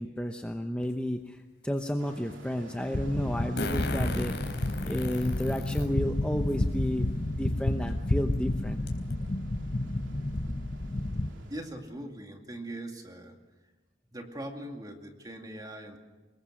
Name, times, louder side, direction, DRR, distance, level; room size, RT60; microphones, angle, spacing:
voice 1, 0.0-4.5 4.8-7.1 7.3-8.8, equal, 5° left, 4 dB, 0.8 m, -32 dB
Fart, 0.8-0.9 3.6-5.9 6.5-6.6 7.9-8.0 8.3-8.4 8.9-9.1, left 2 dB, 65° left, 4.0 m, -37 dB
sound 1, 2.0-11.7, right 1 dB, 85° right, 2.9 m, -52 dB
sound 2, 2.9-11.3, left 1 dB, 35° left, 0.9 m, -30 dB
voice 2, 11.5-13.4 14.1-16.0, right 1 dB, 20° right, 3 dB, 2.3 m, -41 dB
25.0 x 21.0 x 6.4 m, 1.3 s
head